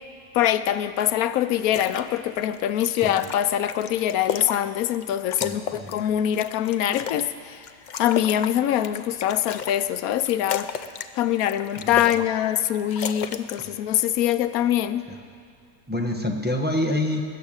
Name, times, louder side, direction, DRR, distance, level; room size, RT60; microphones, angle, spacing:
voice 1, 0.3-7.6 8.0-10.7 11.1-15.1, left 11 dB, 90° left, 12 dB, 1.1 m, -24 dB
sound 1, 1.6-2.0 2.4-5.0 5.3-7.3 7.6-9.8 10.1-11.1 11.4-12.3 12.5-13.7, left 7 dB, 70° left, 0.4 m, -33 dB
voice 2, 5.4-6.0 11.8-12.1 13.6-13.7 15.9-17.2, left 1 dB, 10° right, 1 dB, 1.0 m, -27 dB
20.0 x 6.8 x 8.8 m, 2.4 s
omnidirectional pair, 1.5 m